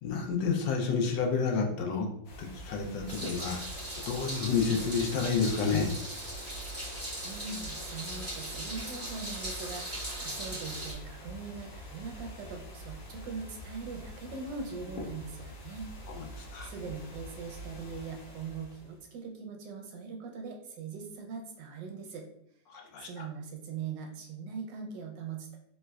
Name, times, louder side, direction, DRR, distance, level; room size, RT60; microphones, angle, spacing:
voice 1, 0.0-2.1 2.4-3.7 4.1-5.9 16.1-16.7 22.7-23.3, left 5 dB, 75° left, 2 dB, 1.2 m, -30 dB
sound 1, 2.2-19.0, equal, 60° left, 0.9 m, -45 dB
Meow, 3.1-10.9, right 1 dB, 25° right, 0.3 m, -39 dB
voice 2, 7.2-15.9 16.6-22.3 23.0-25.6, right 5 dB, 75° right, 2 dB, 1.1 m, -41 dB
3.3 x 3.1 x 2.2 m, 0.73 s
omnidirectional pair, 2.0 m